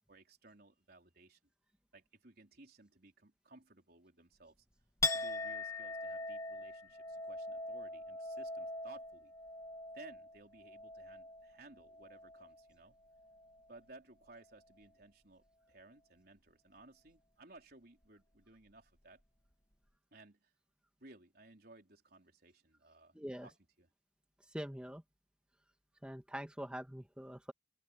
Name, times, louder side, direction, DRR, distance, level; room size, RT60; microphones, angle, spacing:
voice 1, 0.1-1.4 1.9-4.5 5.1-9.3 9.9-12.9 13.7-19.2 20.1-20.5 21.0-23.5 23.8-23.9, right 2 dB, 55° right, 4.1 m, -59 dB
Chink clink, 5.0-12.7 13.0-13.7, left 2 dB, 15° left, 1.7 m, -42 dB
voice 2, 23.1-23.5 24.5-25.0 26.0-27.5, equal, 5° right, 1.6 m, -44 dB
open air
head